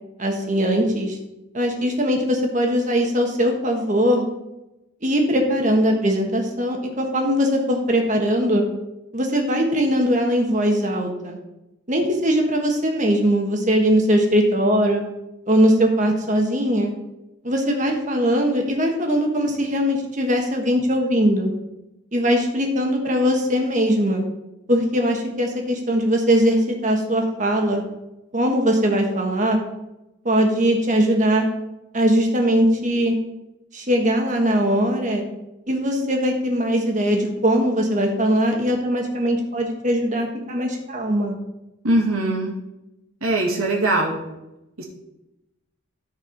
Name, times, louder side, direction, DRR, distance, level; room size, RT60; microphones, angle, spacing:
voice 1, 0.2-1.2 1.5-4.2 5.0-8.6 9.1-11.4 11.9-15.0 15.5-16.9 17.4-21.5 22.1-24.2 24.7-27.8 28.3-29.6 30.2-31.4 31.9-33.1 33.7-35.2 35.7-41.3, equal, 35° right, 2 dB, 1.5 m, -20 dB
voice 2, 41.8-42.5 43.2-44.2 44.8-44.9, right 2 dB, 80° right, -2 dB, 2.3 m, -21 dB
14.0 x 4.7 x 4.5 m, 0.94 s
head